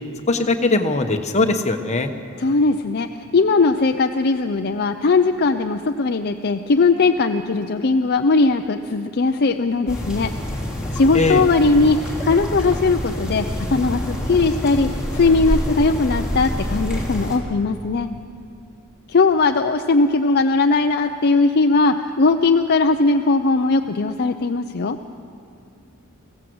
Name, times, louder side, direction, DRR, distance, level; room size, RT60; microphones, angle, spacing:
voice 1, 0.3-2.1 11.1-11.4, left 3 dB, 30° left, 5 dB, 1.2 m, -20 dB
voice 2, 2.4-3.1 3.3-10.3 10.9-18.1 19.1-25.0, left 3 dB, 50° left, 5 dB, 0.6 m, -19 dB
sound 1, 9.9-17.4, equal, 5° right, 3.1 m, -26 dB
21.5 x 16.0 x 7.9 m, 2.4 s
head